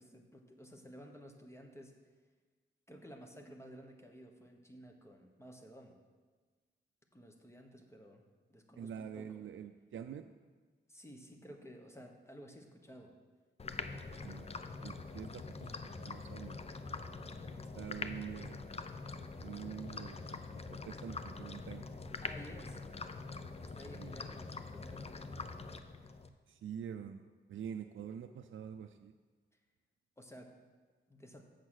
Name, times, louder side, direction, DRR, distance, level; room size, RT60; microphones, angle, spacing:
voice 1, 0.0-1.9 2.9-6.0 7.1-8.2 8.5-9.4 10.9-13.1 22.2-22.8 23.6-25.3 30.2-30.6 31.1-31.5, equal, 15° left, 3 dB, 1.1 m, -54 dB
voice 2, 8.8-10.3 14.2-14.5 14.8-16.6 17.8-18.7 19.4-22.2 24.0-24.2 26.5-29.1, right 8 dB, 90° right, 7 dB, 0.4 m, -46 dB
sound 1, 13.6-26.3, left 3 dB, 30° left, 0.5 m, -44 dB
8.1 x 6.5 x 6.3 m, 1.4 s
wide cardioid pair, 95°, 20 cm